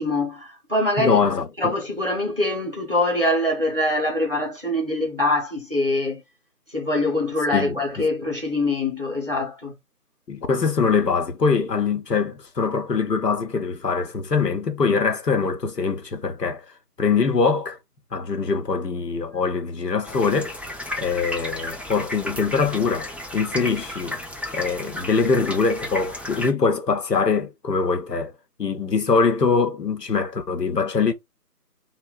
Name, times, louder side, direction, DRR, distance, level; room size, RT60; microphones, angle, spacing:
voice 1, 0.0-1.2 1.6-6.2 6.7-9.7, left 2 dB, 35° right, 0.7 m, -24 dB
voice 2, 1.0-1.7 7.5-8.1 10.3-16.6 17.0-17.8 18.1-20.6 21.0-24.2 24.5-28.3 28.6-31.1, left 5 dB, 80° left, 0.8 m, -23 dB
sound 1, 20.0-26.5, left 1 dB, 5° right, 0.4 m, -33 dB
3.6 x 2.1 x 2.3 m
figure-of-eight pair, 165°, 48 cm